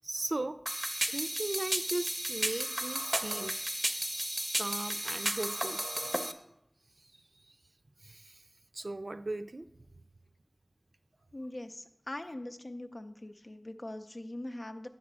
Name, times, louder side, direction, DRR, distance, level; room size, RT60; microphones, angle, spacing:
voice 1, 0.0-0.6 1.1-3.6 4.6-5.9 7.0-7.1 7.4-7.6 8.0-8.4 8.7-9.7, right 2 dB, 80° right, 10 dB, 0.4 m, -37 dB
sound 1, 0.7-6.3, right 1 dB, 35° right, 0.5 m, -33 dB
voice 2, 11.3-14.9, left 1 dB, 65° left, 7 dB, 0.5 m, -42 dB
8.4 x 4.2 x 6.1 m, 0.78 s
wide cardioid pair, 45°, 0 cm